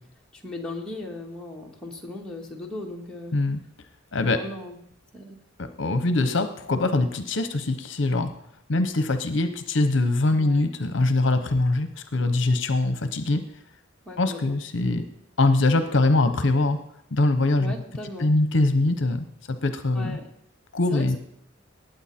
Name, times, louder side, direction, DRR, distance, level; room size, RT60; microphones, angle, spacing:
voice 1, 0.3-3.4 4.3-4.8 5.1-5.4 10.4-10.7 14.1-14.6 17.6-18.3 19.9-20.3 20.9-21.2, left 2 dB, 5° left, -3 dB, 1.9 m, -37 dB
voice 2, 5.6-8.3 8.7-13.4 14.2-15.1 15.4-16.8 17.1-17.7 18.2-20.2 20.7-21.2, left 2 dB, 65° left, 9 dB, 0.8 m, -23 dB
19.0 x 9.1 x 4.3 m, 0.74 s
head